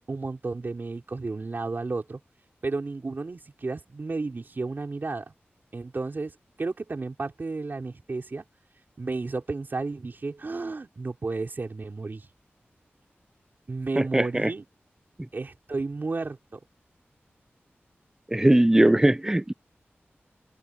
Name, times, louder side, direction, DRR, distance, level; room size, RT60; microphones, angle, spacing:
voice 1, 0.0-2.2 2.6-5.3 5.7-6.3 6.6-8.4 9.0-12.3 13.7-14.6 15.3-16.6, right 3 dB, 50° right, 4.3 m, -32 dB
voice 2, 14.0-14.5 18.3-19.5, right 1 dB, 10° right, 0.4 m, -20 dB
wide cardioid pair, 110°, 4 cm